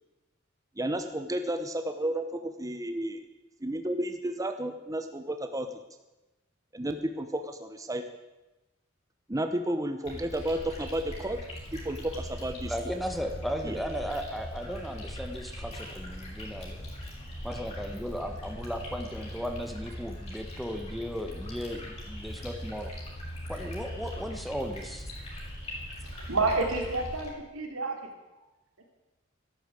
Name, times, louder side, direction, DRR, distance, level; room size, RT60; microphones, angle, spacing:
voice 1, 0.8-3.3 3.6-5.7 6.7-8.0 9.3-11.4 11.7-12.7 13.6-13.8, right 1 dB, 15° right, 7 dB, 0.9 m, -32 dB
sound 1, 10.0-27.3, equal, 30° left, 5.4 m, -40 dB
voice 2, 12.7-16.8 17.4-22.9 23.5-25.1, equal, ahead, 5 dB, 1.5 m, -36 dB
voice 3, 26.0-28.0, right 3 dB, 90° right, 3 dB, 3.2 m, -29 dB
13.5 x 12.0 x 8.6 m, 1.1 s
head